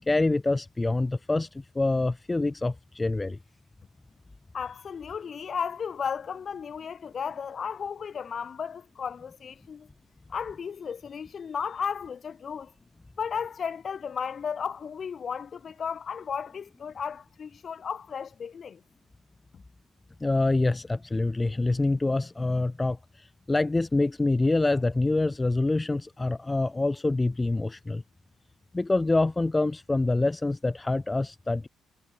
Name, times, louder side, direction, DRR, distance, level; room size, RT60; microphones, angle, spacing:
voice 1, 0.1-3.4 20.2-28.0 28.7-31.7, left 2 dB, 15° left, 0.7 m, -26 dB
voice 2, 4.5-9.9 10.3-12.7 13.2-18.8 19.5-19.6, left 6 dB, 40° left, 1.9 m, -34 dB
cardioid pair, 130°, 0 cm